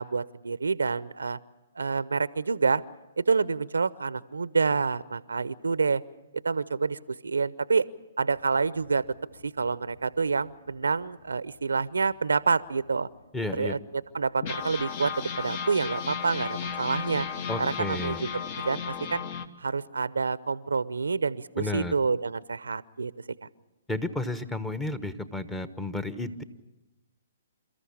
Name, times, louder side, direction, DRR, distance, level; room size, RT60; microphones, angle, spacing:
voice 1, 0.0-1.4 1.7-2.8 3.2-6.0 6.4-7.9 8.2-9.0 9.4-13.1 13.5-13.8 14.1-17.3 17.6-18.3 18.7-19.2 19.6-23.1, right 4 dB, 85° right, 18 dB, 0.7 m, -27 dB
sound 1, 8.4-11.6 12.0-12.1 12.4-12.6 13.2-13.3 14.4-19.5, left 7 dB, 45° left, 1.3 m, -35 dB
voice 2, 13.3-13.8 17.5-18.2 21.6-21.9 23.9-26.4, left 2 dB, 10° left, 12 dB, 1.2 m, -32 dB
28.5 x 14.0 x 8.7 m, 1.1 s
hypercardioid pair, 130°, 0 cm